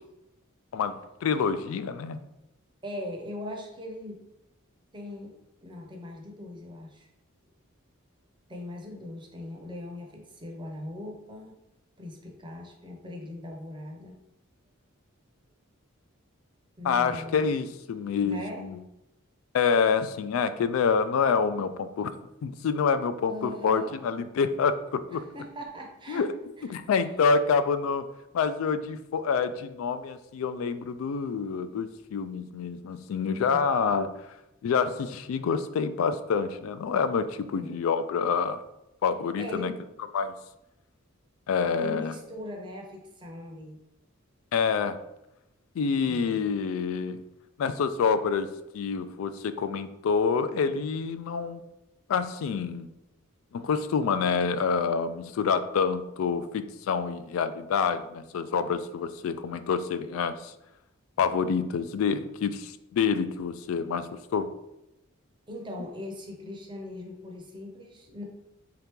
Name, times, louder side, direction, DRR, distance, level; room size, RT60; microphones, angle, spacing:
voice 1, 0.7-2.2 16.8-18.8 19.5-22.2 22.4-25.3 26.1-26.3 26.7-28.1 28.3-34.2 34.6-38.6 39.0-39.7 40.1-40.4 41.5-42.1 44.5-45.0 45.8-47.2 47.6-51.6 52.1-52.9 53.5-60.5 61.2-64.5, left 5 dB, 70° left, 12 dB, 0.3 m, -27 dB
voice 2, 2.8-4.2 4.9-5.4 5.6-7.1 8.5-11.5 12.0-14.2 16.8-17.6 18.1-18.7 23.3-24.2 25.1-26.3 26.6-26.8 33.3-33.9 37.5-37.8 39.4-39.8 41.8-43.8 46.0-46.4 65.5-68.2, left 1 dB, 20° right, 1 dB, 0.7 m, -40 dB
3.8 x 2.9 x 3.5 m, 0.88 s
head